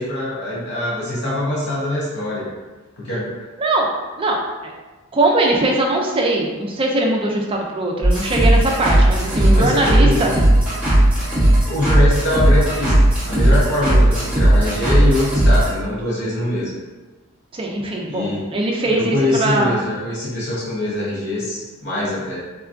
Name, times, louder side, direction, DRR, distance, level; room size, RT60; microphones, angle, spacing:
voice 1, 0.0-2.5 3.0-3.5 9.4-10.3 11.7-16.7 18.1-18.5 18.9-22.4, left 1 dB, 50° left, -6 dB, 0.6 m, -23 dB
voice 2, 3.6-3.9 4.2-4.4 4.6-4.7 5.1-10.3 17.5-19.8, right 2 dB, 25° right, 0 dB, 0.4 m, -20 dB
sound 1, 8.0-15.7, right 1 dB, 5° right, 0.9 m, -15 dB
3.6 x 2.3 x 2.4 m, 1.2 s
head